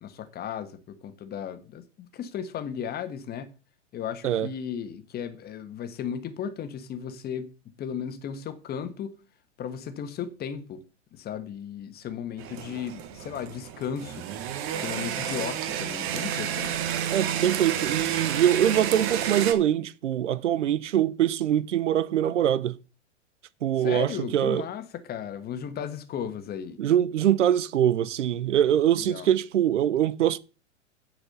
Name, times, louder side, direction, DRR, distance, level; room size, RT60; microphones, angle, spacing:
voice 1, 0.0-3.5 3.9-7.5 7.8-9.1 9.6-10.8 11.1-14.2 14.8-16.9 23.8-26.8 29.0-29.3, left 8 dB, 25° left, 1.4 m, -35 dB
sound 1, 12.4-19.5, right 9 dB, 35° right, 1.5 m, -30 dB
voice 2, 17.1-22.8 23.6-24.7 26.8-30.4, right 10 dB, 75° right, 0.7 m, -23 dB
9.8 x 4.9 x 6.8 m
hypercardioid pair, 110°, 36 cm